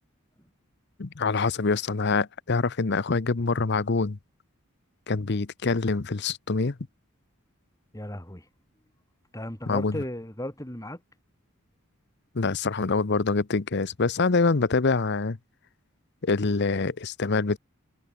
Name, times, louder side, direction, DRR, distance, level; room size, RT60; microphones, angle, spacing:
voice 1, 1.0-4.2 5.1-6.8 9.7-10.0 12.3-15.4 16.2-17.6, left 4 dB, 50° left, 0.8 m, -25 dB
voice 2, 7.9-8.5 9.3-11.0, left 1 dB, 15° left, 3.1 m, -35 dB
head